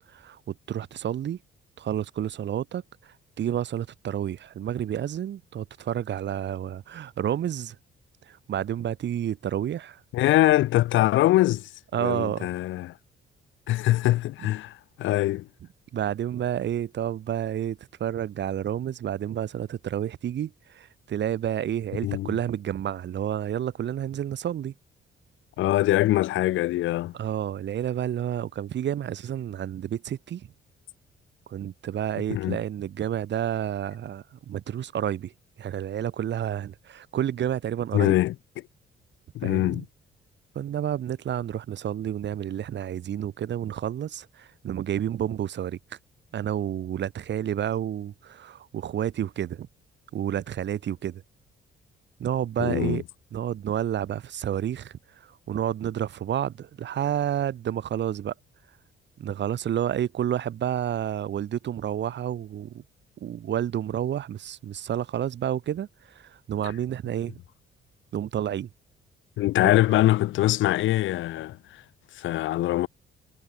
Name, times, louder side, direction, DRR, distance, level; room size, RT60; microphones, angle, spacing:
voice 1, 0.0-1.4 1.8-2.8 3.4-7.8 8.3-10.0 11.9-12.5 15.9-24.7 27.1-30.5 31.5-35.3 35.6-38.1 39.4-39.8 40.6-46.0 46.3-49.7 50.1-51.2 52.2-53.0 53.3-55.0 55.5-58.3 59.2-62.8 63.2-67.4 68.1-68.7 69.6-69.7, right 10 dB, 65° right, 2.1 m, -30 dB
voice 2, 10.1-11.7 12.0-12.9 13.7-15.5 22.0-22.4 25.6-27.1 32.3-32.6 37.9-38.6 39.3-39.8 52.6-53.0 66.6-66.7 69.4-71.8 72.1-72.9, left 15 dB, 75° left, 0.6 m, -23 dB
cardioid pair, 90°, 20 cm